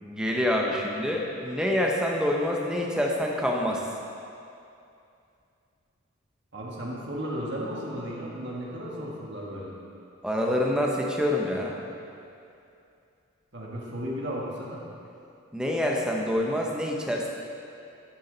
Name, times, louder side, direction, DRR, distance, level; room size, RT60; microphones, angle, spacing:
voice 1, 0.0-3.8 10.2-11.8 15.5-17.3, left 1 dB, 5° right, -1 dB, 0.8 m, -26 dB
voice 2, 6.5-9.7 13.5-14.8, equal, 55° right, -3 dB, 1.7 m, -34 dB
12.5 x 7.3 x 4.0 m, 2.6 s
head